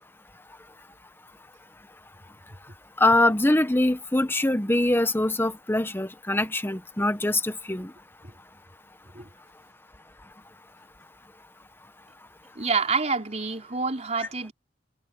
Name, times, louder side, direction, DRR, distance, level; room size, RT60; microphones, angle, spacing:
voice 1, 3.0-7.9, left 1 dB, 10° left, 1.0 m, -23 dB
voice 2, 12.5-14.5, right 4 dB, 40° right, 4.5 m, -27 dB
head